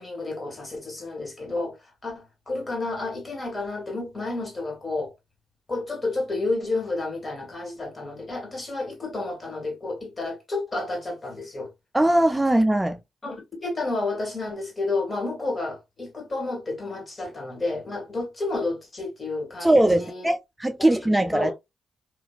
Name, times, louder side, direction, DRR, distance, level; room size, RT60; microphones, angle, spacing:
voice 1, 0.0-5.1 5.7-11.7 13.2-20.3 20.8-21.5, left 2 dB, 35° left, 1.6 m, -31 dB
voice 2, 11.9-13.0 19.6-20.4 20.6-21.5, right 1 dB, 15° right, 0.4 m, -20 dB
2.8 x 2.4 x 2.2 m
supercardioid pair, 55°, 0 cm